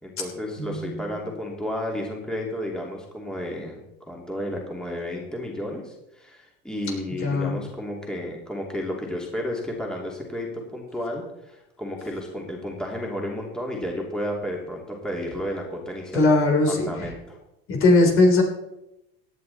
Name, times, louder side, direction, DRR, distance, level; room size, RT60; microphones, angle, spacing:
voice 1, 0.0-16.3 16.7-17.4, left 1 dB, ahead, -2 dB, 2.8 m, -32 dB
voice 2, 0.6-1.0 7.2-7.6 16.1-17.1 17.7-18.4, left 2 dB, 45° left, 2 dB, 3.6 m, -19 dB
17.0 x 9.9 x 4.2 m, 0.90 s
supercardioid pair, 115°, 29 cm